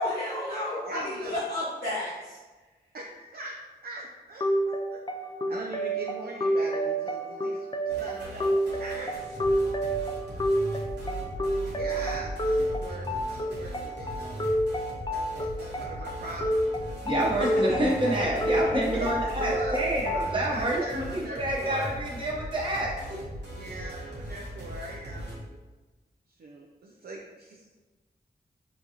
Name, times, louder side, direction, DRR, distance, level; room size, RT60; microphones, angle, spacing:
voice 1, 0.0-2.4 17.1-17.2, left 1 dB, 60° left, -9 dB, 0.9 m, -31 dB
voice 2, 0.8-1.4 2.9-3.6 3.8-5.0 5.5-9.1 10.3-10.4 11.6-14.4 15.1-16.7 18.8-22.0 23.5-25.4 26.4-27.7, right 2 dB, 60° right, -1 dB, 0.4 m, -40 dB
sound 1, 4.4-20.4, equal, 25° left, 0.4 m, -29 dB
sound 2, 7.9-25.4, equal, 90° right, 1.1 m, -39 dB
voice 3, 17.0-22.9, right 1 dB, 30° right, -5 dB, 1.0 m, -28 dB
3.9 x 2.4 x 2.9 m, 1.2 s
cardioid pair, 55°, 18 cm